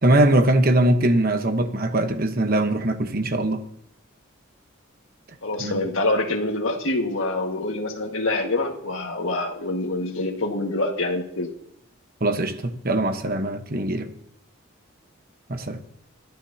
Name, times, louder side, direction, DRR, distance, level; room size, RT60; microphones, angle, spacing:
voice 1, 0.0-3.6 5.6-5.8 12.2-14.1 15.5-15.8, right 1 dB, 45° right, 1.1 m, -21 dB
voice 2, 5.4-11.5, left 2 dB, 70° left, 1.8 m, -26 dB
22.5 x 14.0 x 2.9 m
head